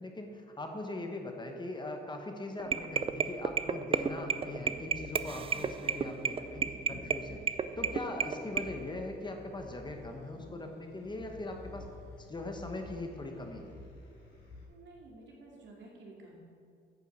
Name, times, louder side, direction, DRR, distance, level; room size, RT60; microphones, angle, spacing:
voice 1, 0.0-7.4 7.8-11.9 12.2-13.7, left 2 dB, 20° left, 3 dB, 1.1 m, -41 dB
sound 1, 2.6-8.6, right 6 dB, 30° right, 0.4 m, -32 dB
sound 2, 4.7-14.7, left 1 dB, 65° left, 2.6 m, -51 dB
voice 2, 14.7-16.4, right 2 dB, 70° right, -2 dB, 2.4 m, -52 dB
9.2 x 5.5 x 7.0 m, 2.4 s
cardioid pair, 90°, 20 cm